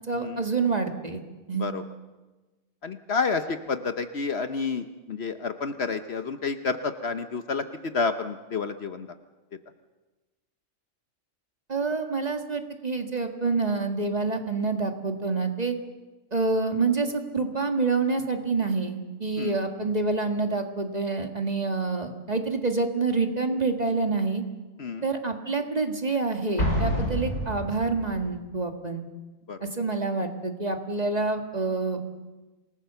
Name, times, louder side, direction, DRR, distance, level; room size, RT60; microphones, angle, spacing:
voice 1, 0.1-1.2 1.5-1.7 11.7-15.8 16.3-24.4 25.0-29.1 29.7-32.0, right 3 dB, 30° right, 5 dB, 1.9 m, -27 dB
voice 2, 2.8-9.1 19.4-19.6 24.8-25.0 29.5-29.6, left 4 dB, 55° left, 9 dB, 1.1 m, -30 dB
Explosion, 26.6-28.2, equal, 70° left, 6.4 m, -28 dB
27.5 x 19.0 x 6.9 m, 1.2 s
omnidirectional pair, 1.4 m